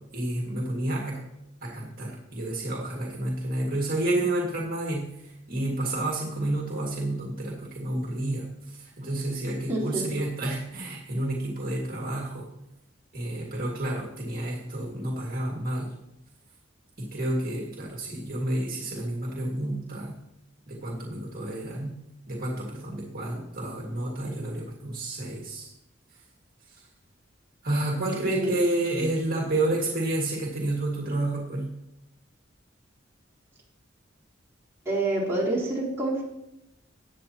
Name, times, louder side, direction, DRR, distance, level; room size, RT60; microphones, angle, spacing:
voice 1, 0.1-1.2 1.6-12.5 13.1-15.9 17.0-20.2 20.7-21.9 22.3-25.7 27.6-31.7, right 1 dB, 50° right, -3 dB, 2.1 m, -30 dB
voice 2, 9.7-10.0 28.3-28.6 34.9-36.2, right 2 dB, 15° right, -8 dB, 3.9 m, -27 dB
19.0 x 8.4 x 3.0 m, 0.87 s
head